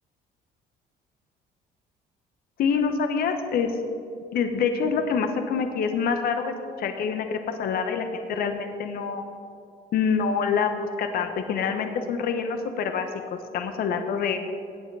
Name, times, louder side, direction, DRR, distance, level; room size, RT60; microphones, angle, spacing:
voice 1, 2.6-3.8 4.3-9.2 9.9-13.1 13.5-14.4, left 6 dB, 60° left, 7 dB, 1.1 m, -26 dB
19.0 x 8.5 x 4.8 m, 2.4 s
cardioid pair, 110°, 17 cm